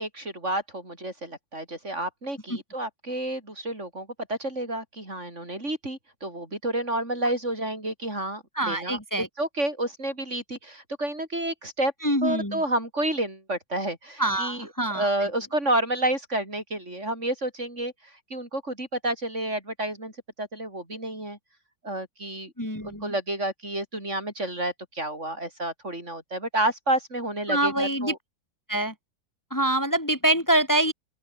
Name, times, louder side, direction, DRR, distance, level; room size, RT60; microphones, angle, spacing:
voice 1, 0.0-11.9 12.2-14.7 14.9-20.1 20.4-21.4 21.8-22.5 22.8-28.2, right 1 dB, 35° right, 6.4 m, -30 dB
voice 2, 8.6-9.3 12.0-12.6 14.2-15.1 22.6-23.1 27.5-28.1 28.7-28.9 29.5-30.9, right 1 dB, 10° left, 3.8 m, -25 dB
open air
omnidirectional pair, 2.1 m